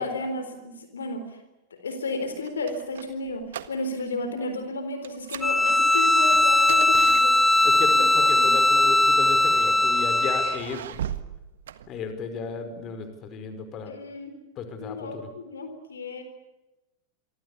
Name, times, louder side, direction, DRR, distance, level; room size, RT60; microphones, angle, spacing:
voice 1, 0.0-1.4 1.7-8.6 13.9-14.4 14.8-16.2, left 2 dB, 70° left, 8 dB, 3.9 m, -33 dB
sound 1, 2.2-4.1 4.4-4.6 5.0-7.8 8.7-9.6 10.1-12.4, right 10 dB, 60° right, 1.6 m, -38 dB
Bowed string instrument, 5.4-10.6, left 2 dB, 10° left, 1.2 m, -20 dB
voice 2, 7.6-11.0 11.9-13.9 14.6-15.3, left 5 dB, 35° left, 9 dB, 5.2 m, -34 dB
28.0 x 25.0 x 7.0 m, 1.0 s
figure-of-eight pair, 90°, 0 cm